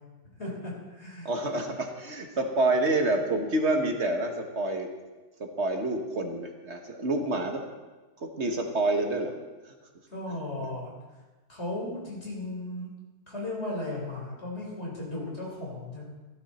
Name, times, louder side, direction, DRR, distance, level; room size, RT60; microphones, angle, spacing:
voice 1, 0.4-1.3 10.1-10.9 11.5-12.9 13.3-16.0, left 2 dB, 40° left, -4 dB, 4.9 m, -36 dB
voice 2, 1.2-4.9 5.4-7.7 8.2-9.3 9.6-9.7 10.6-10.7, right 2 dB, 45° right, 3 dB, 1.5 m, -28 dB
15.5 x 12.5 x 4.3 m, 1.2 s
omnidirectional pair, 1.7 m